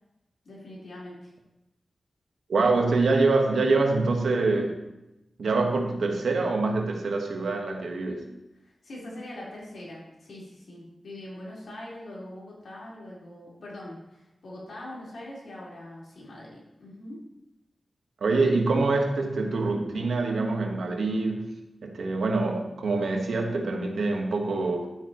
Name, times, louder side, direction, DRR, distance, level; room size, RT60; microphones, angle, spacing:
voice 1, 0.4-1.3 8.6-17.3, left 1 dB, 75° left, -6 dB, 4.2 m, -42 dB
voice 2, 2.5-4.8 5.4-8.2 18.2-21.5 21.8-24.9, right 3 dB, 85° right, 2 dB, 1.4 m, -25 dB
12.0 x 8.8 x 3.1 m, 0.94 s
wide cardioid pair, 95°, 0 cm